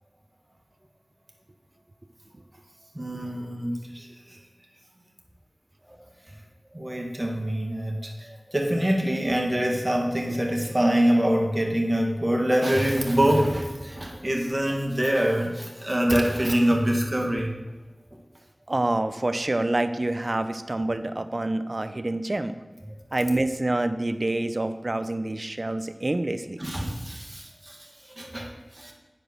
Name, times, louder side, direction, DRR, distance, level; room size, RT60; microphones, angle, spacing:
voice 1, 2.9-4.4 5.9-6.0 6.7-17.6 26.6-28.9, equal, 25° right, 0 dB, 1.9 m, -25 dB
voice 2, 18.7-22.5 23.1-26.6, right 2 dB, 50° right, 10 dB, 0.6 m, -27 dB
9.4 x 5.1 x 6.1 m, 1.2 s
wide cardioid pair, 55°, 0 cm